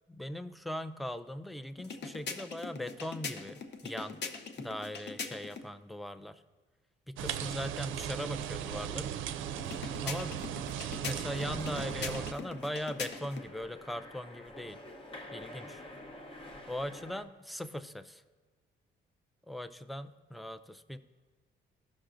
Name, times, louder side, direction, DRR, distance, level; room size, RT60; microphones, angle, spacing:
voice 1, 0.1-4.2 4.6-6.4 7.1-9.1 10.0-10.4 11.0-14.8 15.3-15.8 16.7-18.2 19.5-21.0, left 1 dB, ahead, 12 dB, 0.4 m, -40 dB
sound 1, 1.8-5.7 9.6-13.5, left 5 dB, 60° left, 0.7 m, -42 dB
sound 2, 7.2-12.3, right 9 dB, 85° right, 0.4 m, -37 dB
sound 3, 11.3-17.2, left 1 dB, 25° left, 0.9 m, -48 dB
15.0 x 6.2 x 2.5 m, 1.4 s
cardioid pair, 90°, 20 cm